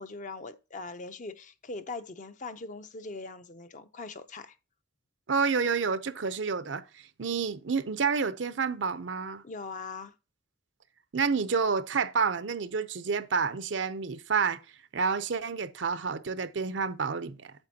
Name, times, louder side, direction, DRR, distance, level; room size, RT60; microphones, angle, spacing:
voice 1, 0.0-4.6 9.4-10.1, left 3 dB, 45° left, 0.7 m, -41 dB
voice 2, 5.3-9.4 11.1-14.6 14.9-17.5, right 5 dB, 80° right, 0.7 m, -29 dB
8.9 x 7.6 x 2.8 m
head